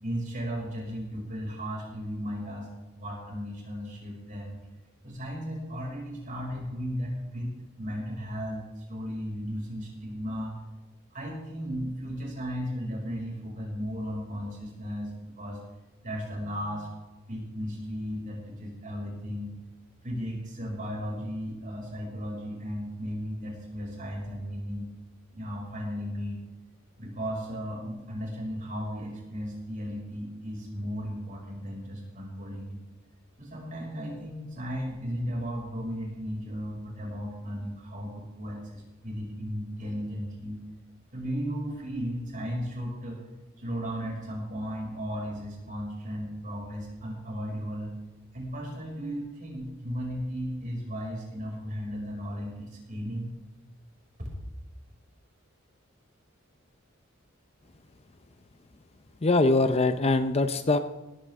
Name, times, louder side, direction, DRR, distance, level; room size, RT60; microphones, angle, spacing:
voice 1, 0.0-2.7 3.0-4.6 5.0-10.5 11.1-15.6 16.0-16.9 17.3-19.5 20.0-24.9 25.3-26.4 27.0-32.8 33.4-40.6 41.1-43.2 43.6-47.9 48.3-53.3 54.2-54.3, equal, 40° right, -2 dB, 6.1 m, -35 dB
voice 2, 59.2-60.8, left 2 dB, 30° left, 9 dB, 0.6 m, -23 dB
17.5 x 15.0 x 3.7 m, 1.1 s
head